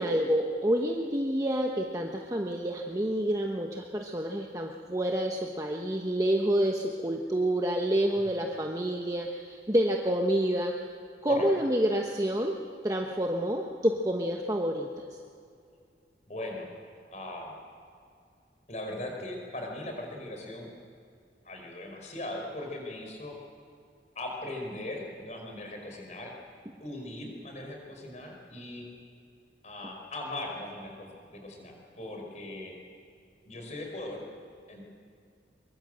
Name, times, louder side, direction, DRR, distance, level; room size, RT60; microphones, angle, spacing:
voice 1, 0.0-10.7 11.2-12.6 12.8-15.0, right 1 dB, 20° right, 1 dB, 1.1 m, -28 dB
voice 2, 16.3-16.7 17.1-17.5 18.7-20.7 21.4-23.3 24.1-26.3 26.8-28.9 29.6-32.7 33.4-34.2 34.7-34.8, left 1 dB, 40° left, 2 dB, 5.1 m, -39 dB
24.0 x 23.0 x 7.9 m, 2.4 s
head